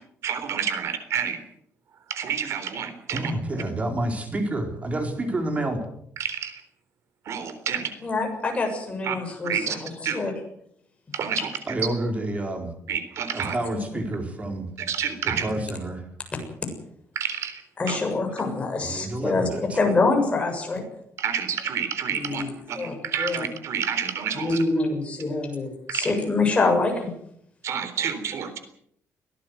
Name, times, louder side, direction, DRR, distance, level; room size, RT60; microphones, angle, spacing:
voice 1, 0.2-1.4 2.1-3.3 6.2-6.6 7.3-7.9 9.0-9.2 9.4-9.8 10.0-10.2 11.1-11.5 12.9-13.5 14.8-15.4 17.2-18.0 21.2-24.6 25.9-26.1 27.6-28.6, right 8 dB, 65° right, 10 dB, 3.7 m, -29 dB
voice 2, 3.1-5.8 11.7-12.7 13.3-14.7 15.3-16.0 18.8-19.8, right 1 dB, 25° right, 4 dB, 4.3 m, -29 dB
voice 3, 8.0-10.3 11.1-11.2 17.8-19.4 19.7-20.8 22.1-22.5 22.8-23.4 24.4-27.1, left 3 dB, 20° left, 3 dB, 7.2 m, -25 dB
23.0 x 18.0 x 7.9 m, 0.70 s
cardioid pair, 150°, 5 cm